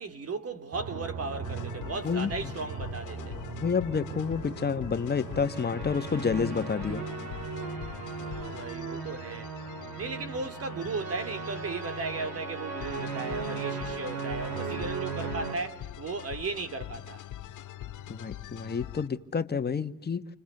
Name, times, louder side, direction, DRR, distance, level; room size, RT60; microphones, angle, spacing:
voice 1, 0.0-3.4 8.2-9.5 10.0-17.2, right 4 dB, 50° right, 3.6 m, -36 dB
sound 1, 0.7-15.6, right 5 dB, 85° right, 4.9 m, -37 dB
sound 2, 1.4-19.1, left 12 dB, 80° left, 1.9 m, -43 dB
voice 2, 3.6-7.1 18.1-20.2, left 6 dB, 35° left, 1.5 m, -29 dB
30.0 x 29.0 x 6.8 m
cardioid pair, 90°, 30 cm